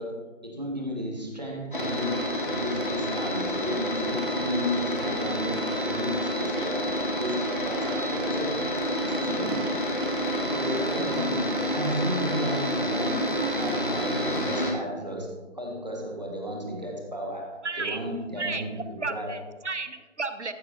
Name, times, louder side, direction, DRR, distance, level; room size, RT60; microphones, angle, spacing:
voice 1, 0.0-8.6 9.0-9.8 10.5-19.4, equal, 35° right, 0 dB, 1.4 m, -34 dB
sound 1, 1.7-14.7, equal, 40° left, 1.5 m, -28 dB
voice 2, 17.6-18.0 18.4-18.6 19.0-20.5, right 3 dB, 65° right, 10 dB, 0.8 m, -32 dB
14.0 x 7.9 x 2.6 m, 1.3 s
figure-of-eight pair, 175°, 38 cm